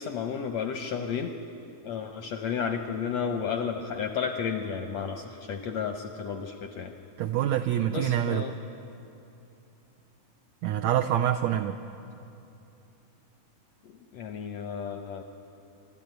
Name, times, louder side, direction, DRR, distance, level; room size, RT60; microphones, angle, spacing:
voice 1, 0.0-1.3 1.8-6.9 7.9-8.6 13.8-15.2, left 6 dB, 75° left, 5 dB, 1.5 m, -32 dB
voice 2, 7.2-8.5 10.6-11.8, right 11 dB, 90° right, 6 dB, 1.5 m, -26 dB
25.5 x 12.5 x 9.3 m, 2.8 s
omnidirectional pair, 3.9 m